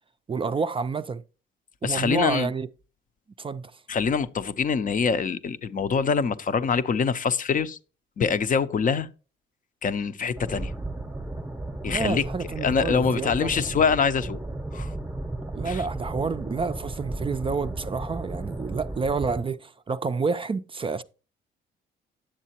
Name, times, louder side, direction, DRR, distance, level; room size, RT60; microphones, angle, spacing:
voice 1, 0.3-1.2 1.8-2.7 3.4-3.7 11.9-13.6 15.5-21.0, right 4 dB, 25° right, 0.4 m, -29 dB
voice 2, 1.8-2.5 3.9-7.8 8.2-9.1 9.8-10.7 11.8-12.2 12.6-14.4 14.7-14.9 15.6-15.8, left 6 dB, 40° left, 0.6 m, -24 dB
sound 1, 10.3-19.4, right 2 dB, 10° right, 0.8 m, -34 dB
10.0 x 7.3 x 2.9 m
cardioid pair, 90°, 20 cm